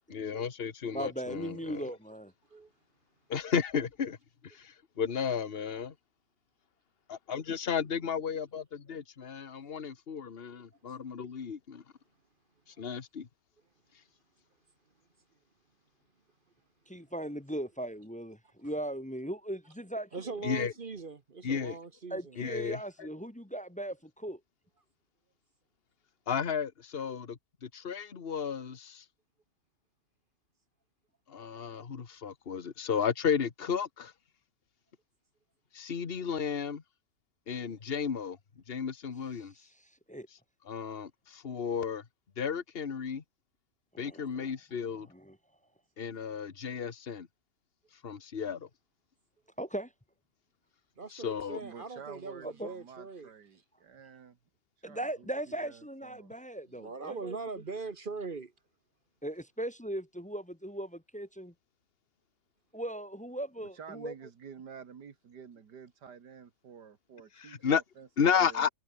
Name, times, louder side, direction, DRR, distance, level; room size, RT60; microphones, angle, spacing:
voice 1, 0.1-1.9 3.3-4.2 4.4-5.9 7.1-11.8 12.8-13.3 20.4-20.7 21.4-21.8 22.4-23.1 26.3-29.0 31.3-34.1 35.7-36.8 37.5-38.4 38.7-39.5 40.7-42.0 42.4-43.2 44.0-45.1 46.0-47.3 48.0-48.7 51.1-51.6 67.4-67.8 68.2-68.7, left 7 dB, 35° left, 1.5 m, -33 dB
voice 2, 0.9-2.3 16.9-20.4 22.1-24.4 40.1-40.3 43.9-44.5 45.1-45.4 49.6-49.9 52.4-52.7 54.8-57.4 59.2-61.5 62.7-64.1, right 1 dB, 5° left, 0.7 m, -38 dB
voice 3, 20.1-22.4 51.0-53.3 56.7-58.5, right 4 dB, 35° right, 1.1 m, -41 dB
voice 4, 51.6-54.4 54.8-56.3 63.6-68.1 68.4-68.7, right 7 dB, 85° right, 2.3 m, -50 dB
omnidirectional pair, 1.8 m